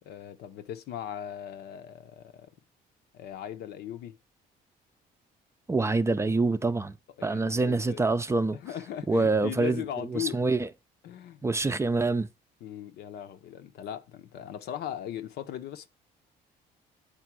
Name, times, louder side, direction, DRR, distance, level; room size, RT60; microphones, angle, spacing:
voice 1, 0.0-2.5 3.1-4.2 7.2-8.0 8.5-10.4 11.0-11.4 12.6-15.9, left 10 dB, 75° left, 0.9 m, -38 dB
voice 2, 5.7-7.0 7.2-8.6 9.1-9.8 10.1-10.7 11.4-12.3, right 3 dB, 15° right, 0.5 m, -26 dB
8.9 x 4.1 x 6.1 m
cardioid pair, 110°, 17 cm